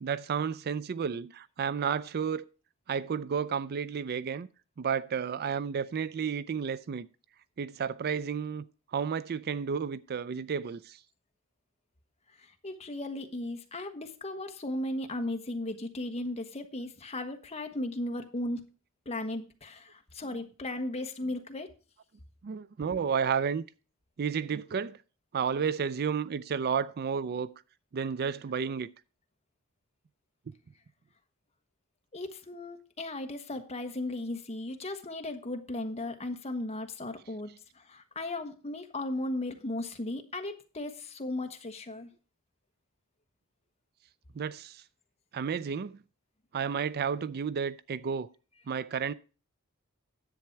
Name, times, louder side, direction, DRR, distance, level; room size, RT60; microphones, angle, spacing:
voice 1, 0.0-2.4 2.9-4.5 4.8-7.1 7.6-8.6 8.9-11.0 20.3-20.4 21.2-21.3 22.4-23.6 24.2-25.0 25.3-27.5 27.9-28.9 44.3-44.8 45.3-46.0 46.5-48.3 48.7-49.1, right 6 dB, 45° right, 0.4 m, -32 dB
voice 2, 12.4-18.7 19.0-21.7 32.1-42.1, left 1 dB, 30° left, 1.3 m, -36 dB
10.5 x 8.0 x 4.6 m
head